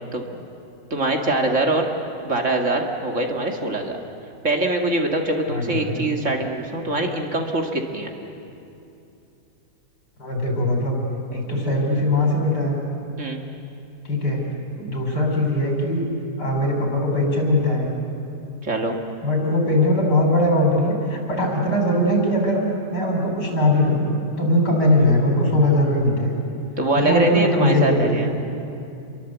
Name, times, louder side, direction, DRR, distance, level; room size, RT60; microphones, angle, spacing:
voice 1, 0.1-0.4 0.9-1.9 2.2-4.0 4.4-8.1 13.2-13.4 18.6-19.0 26.8-28.3, right 2 dB, 45° right, 3 dB, 2.2 m, -23 dB
voice 2, 5.5-6.0 10.2-11.0 11.3-12.8 14.0-14.4 14.8-16.1 16.4-17.9 19.2-24.1 24.4-26.3 26.9-28.3, left 1 dB, 75° left, 0 dB, 5.8 m, -20 dB
28.0 x 22.5 x 8.2 m, 2.7 s
omnidirectional pair, 1.8 m